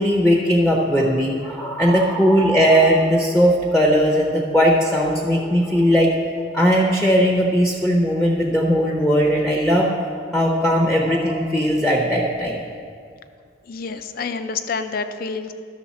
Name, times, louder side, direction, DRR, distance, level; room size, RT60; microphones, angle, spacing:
voice 1, 0.0-6.1 6.5-9.9 10.3-12.6, equal, ahead, -1 dB, 0.8 m, -18 dB
voice 2, 13.7-15.5, left 4 dB, 50° left, 9 dB, 0.5 m, -28 dB
12.0 x 6.5 x 4.2 m, 2.2 s
head